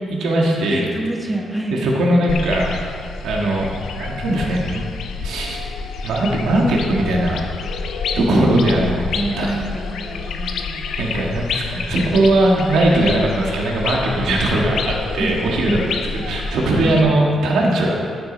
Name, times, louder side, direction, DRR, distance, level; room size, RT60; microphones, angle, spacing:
voice 1, 0.1-0.9 1.7-2.7 3.2-4.9 5.2-5.6 6.0-7.4 8.2-9.6 11.0-18.0, right 1 dB, 85° right, -2 dB, 1.7 m, -19 dB
voice 2, 0.6-1.9 8.1-8.5 9.2-10.8 14.3-14.5 15.2-15.4 15.7-15.9 16.8-17.0, right 1 dB, 5° right, 0 dB, 1.0 m, -27 dB
sound 1, 2.3-17.0, left 4 dB, 85° left, 0.7 m, -28 dB
14.0 x 6.8 x 4.1 m, 2.3 s
cardioid pair, 155°, 0 cm